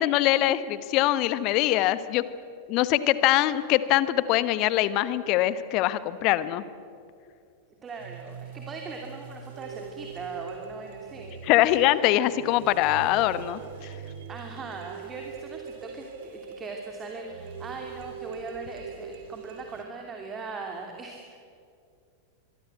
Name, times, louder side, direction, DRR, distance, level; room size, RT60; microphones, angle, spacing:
voice 1, 0.0-2.2 2.7-6.6 11.5-13.9, left 14 dB, 40° left, 15 dB, 1.2 m, -23 dB
voice 2, 7.8-11.4 14.3-21.4, right 4 dB, 20° right, 2 dB, 2.8 m, -40 dB
sound 1, 7.9-19.8, right 6 dB, 55° right, 3.1 m, -42 dB
24.5 x 24.0 x 8.2 m, 2.4 s
figure-of-eight pair, 90°, 0 cm